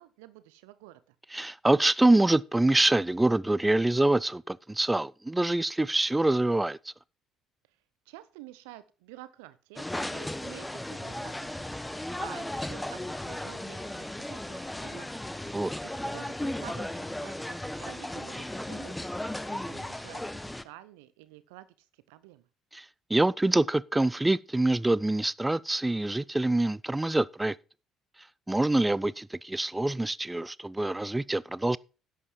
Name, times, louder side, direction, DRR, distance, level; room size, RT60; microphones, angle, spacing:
voice 1, 0.0-1.2 7.7-7.8 8.1-15.1 15.5-19.1 19.5-22.5, right 16 dB, 70° right, 0.8 m, -50 dB
voice 2, 1.3-6.8 15.5-15.7 22.7-22.8 23.1-27.5 28.5-31.8, right 2 dB, 10° right, 0.5 m, -25 dB
sound 1, 9.8-20.6, left 1 dB, 10° left, 1.0 m, -36 dB
11.0 x 7.7 x 4.5 m
figure-of-eight pair, 50°, 0 cm